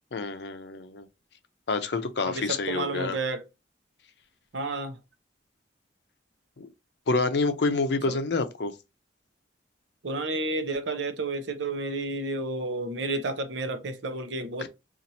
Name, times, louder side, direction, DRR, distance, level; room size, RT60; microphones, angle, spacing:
voice 1, 0.1-1.1 1.7-3.2 6.6-6.7 7.1-8.7 14.6-14.7, left 3 dB, 65° left, 0.6 m, -28 dB
voice 2, 2.2-3.5 4.5-5.0 8.1-8.2 10.0-14.7, right 2 dB, 75° right, 0.7 m, -31 dB
2.8 x 2.5 x 3.9 m
head